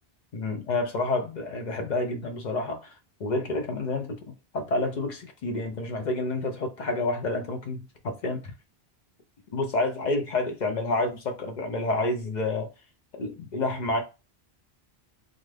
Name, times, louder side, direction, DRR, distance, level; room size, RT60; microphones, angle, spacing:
voice 1, 0.3-2.9 3.2-4.2 4.5-8.5 9.5-12.7 13.1-14.0, left 2 dB, 50° left, 0.7 m, -29 dB
2.5 x 2.4 x 3.2 m
omnidirectional pair, 1.0 m